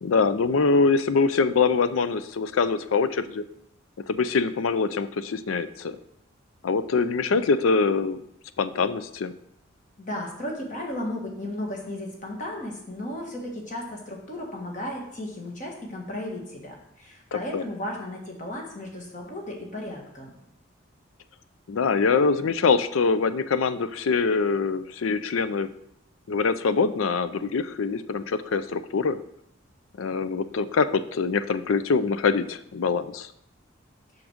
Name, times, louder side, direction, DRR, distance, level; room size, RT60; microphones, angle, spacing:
voice 1, 0.0-3.4 4.1-6.0 6.6-8.2 8.6-9.3 17.3-17.6 21.7-25.7 26.3-29.2 30.0-33.3, left 4 dB, 85° left, 13 dB, 0.5 m, -24 dB
voice 2, 10.0-20.3, left 1 dB, 40° left, 0 dB, 1.7 m, -35 dB
6.2 x 6.0 x 5.0 m, 0.73 s
head